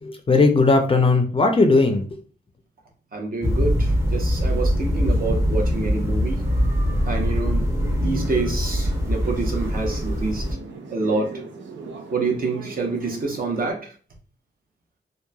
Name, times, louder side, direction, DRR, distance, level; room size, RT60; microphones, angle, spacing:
voice 1, 0.0-2.2, left 3 dB, 30° left, 5 dB, 0.4 m, -18 dB
voice 2, 3.1-6.4 7.1-10.5 10.9-11.4 12.1-13.9, right 3 dB, 50° right, 1 dB, 0.8 m, -27 dB
sound 1, 3.4-10.5, equal, 15° right, 0.7 m, -22 dB
sound 2, 8.2-13.7, right 4 dB, 85° right, 0.5 m, -39 dB
3.0 x 2.1 x 2.2 m, 0.39 s
cardioid pair, 80°, 19 cm